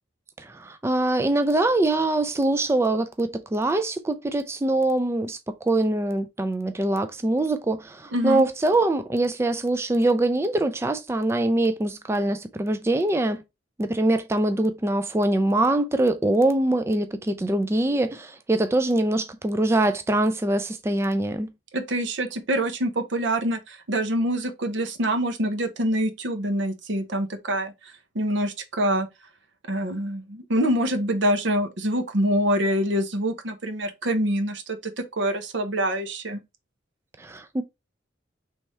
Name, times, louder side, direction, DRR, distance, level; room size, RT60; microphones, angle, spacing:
voice 1, 0.4-13.4 13.8-21.5 37.2-37.6, right 2 dB, 15° right, 0.3 m, -23 dB
voice 2, 8.1-8.4 21.7-29.1 29.7-36.4, equal, 80° right, 0.9 m, -25 dB
3.4 x 3.2 x 4.2 m
head